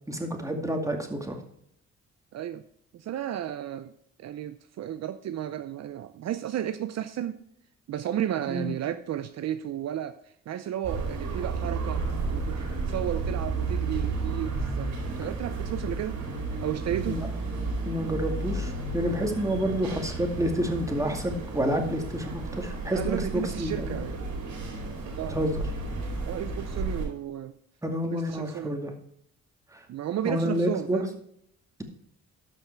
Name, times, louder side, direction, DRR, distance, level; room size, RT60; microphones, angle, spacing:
voice 1, 0.1-1.4 8.5-8.7 17.1-17.2 17.8-23.9 25.3-25.7 27.8-28.9 29.7-29.8 30.3-31.0, equal, 10° right, 3 dB, 2.1 m, -29 dB
voice 2, 2.3-2.6 2.9-3.9 4.2-7.4 7.9-16.2 16.6-17.2 22.9-24.4 25.0-25.4 26.2-27.5 28.1-28.8 29.9-31.2, right 11 dB, 60° right, 10 dB, 0.6 m, -33 dB
sound 1, 10.8-27.1, right 3 dB, 80° right, 4.3 m, -32 dB
13.0 x 5.7 x 4.5 m, 0.71 s
cardioid pair, 90°, 30 cm